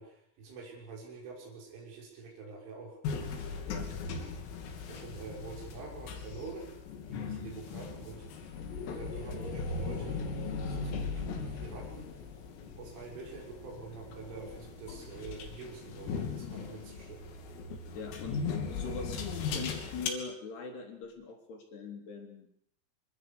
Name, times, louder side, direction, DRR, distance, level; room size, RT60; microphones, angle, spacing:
voice 1, 0.0-3.0 4.9-6.8 7.1-8.2 8.9-10.2 10.7-12.1 12.8-17.3, right 4 dB, 70° right, -2 dB, 8.7 m, -46 dB
sound 1, 3.0-20.1, left 4 dB, 80° left, 5.6 m, -38 dB
voice 2, 17.9-18.4 18.7-19.2 19.5-22.5, left 4 dB, 55° left, 3 dB, 5.4 m, -42 dB
26.5 x 25.0 x 7.1 m, 0.71 s
omnidirectional pair, 5.9 m